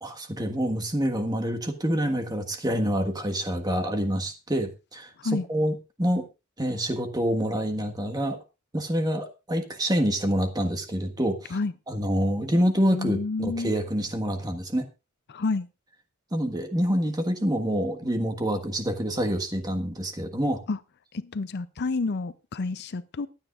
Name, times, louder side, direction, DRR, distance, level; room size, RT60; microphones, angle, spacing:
voice 1, 0.0-5.1 5.5-6.2 6.6-8.4 8.7-11.6 11.9-14.8 16.3-20.6, equal, 20° right, 1.5 m, -27 dB
voice 2, 12.9-13.8 15.3-15.7 20.7-20.8 21.1-23.3, left 3 dB, 50° left, 0.5 m, -29 dB
23.0 x 9.0 x 2.5 m
head